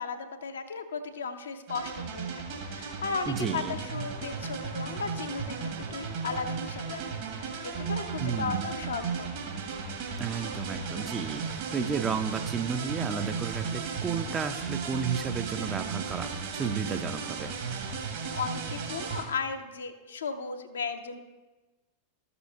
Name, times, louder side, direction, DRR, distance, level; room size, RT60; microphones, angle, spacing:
voice 1, 0.0-9.3 18.3-21.2, left 5 dB, 70° left, 7 dB, 0.6 m, -36 dB
sound 1, 1.7-19.2, right 5 dB, 55° right, 1.7 m, -35 dB
voice 2, 3.3-3.8 8.2-8.7 10.2-17.5, right 6 dB, 20° right, 8 dB, 0.5 m, -32 dB
13.0 x 6.9 x 2.7 m, 1.2 s
figure-of-eight pair, 90°, 0 cm